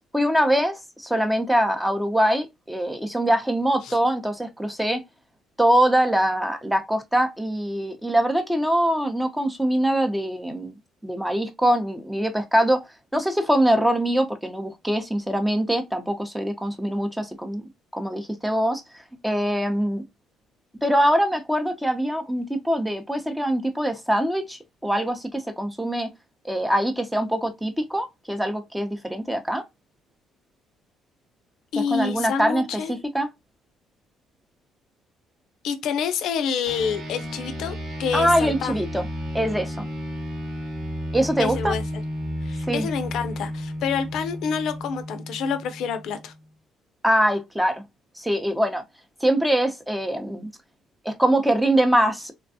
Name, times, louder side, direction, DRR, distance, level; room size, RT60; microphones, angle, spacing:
voice 1, 0.1-5.0 5.6-10.8 11.0-12.8 13.1-18.8 19.2-20.0 20.8-26.1 26.4-29.6 31.9-33.3 38.1-39.0 39.3-39.8 41.1-41.7 42.7-42.9 47.0-47.8 48.2-48.8 49.2-50.5 51.0-52.3, right 1 dB, 5° right, 0.7 m, -23 dB
voice 2, 31.7-32.9 35.6-37.7 38.0-38.8 41.4-41.8 42.4-46.3, left 6 dB, 75° left, 0.5 m, -27 dB
sound 1, 36.7-46.4, equal, 75° right, 1.4 m, -33 dB
3.4 x 2.2 x 2.6 m
cardioid pair, 85°, 0 cm